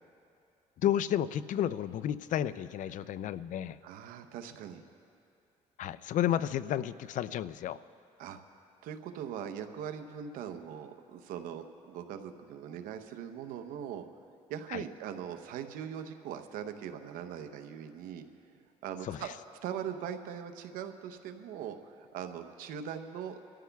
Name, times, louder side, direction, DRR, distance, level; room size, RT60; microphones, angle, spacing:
voice 1, 0.8-3.8 5.8-7.8 14.7-14.8 19.0-19.3, left 11 dB, 65° left, 16 dB, 0.4 m, -32 dB
voice 2, 3.8-4.8 8.2-8.4 8.8-14.0 14.5-18.2 18.8-19.3 19.6-23.4, right 8 dB, 85° right, 8 dB, 0.9 m, -41 dB
28.5 x 14.0 x 2.3 m, 2.5 s
cardioid pair, 80°, 14 cm